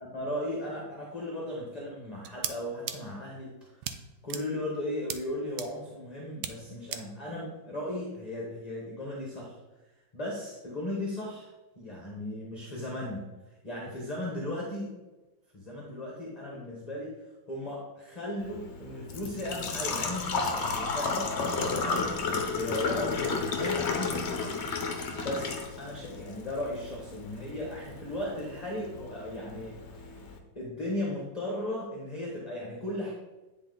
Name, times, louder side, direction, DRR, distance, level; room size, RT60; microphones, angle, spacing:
voice 1, 0.1-3.9 4.2-9.6 10.1-13.2 13.6-14.9 15.5-17.1 17.5-24.6 25.2-30.2 30.5-33.1, left 1 dB, 25° left, -3 dB, 1.1 m, -36 dB
sound 1, 2.2-2.5 2.9-3.0 3.8-3.9 4.3-4.4 5.1-5.2 5.6-5.7 6.4-6.5 6.9-7.0, right 10 dB, 75° right, 1.2 m, -34 dB
Engine / Trickle dribble / Fill (with liquid), 18.4-30.4, left 4 dB, 50° left, 0.9 m, -33 dB
9.8 x 4.2 x 3.9 m, 1.1 s
omnidirectional pair, 2.0 m